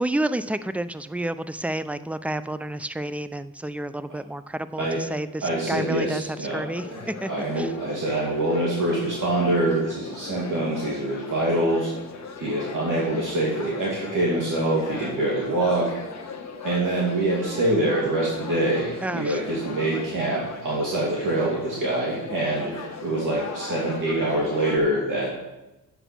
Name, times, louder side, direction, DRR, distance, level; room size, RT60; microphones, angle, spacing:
voice 1, 0.0-7.3 7.5-7.7 19.0-19.4, right 1 dB, 5° right, 13 dB, 0.5 m, -30 dB
voice 2, 5.4-11.9 12.4-15.9 16.6-25.3, right 1 dB, 60° right, -5 dB, 2.6 m, -25 dB
sound 1, 6.7-24.8, left 5 dB, 45° left, 1.5 m, -38 dB
8.2 x 7.9 x 6.1 m, 0.99 s
cardioid pair, 80°, 36 cm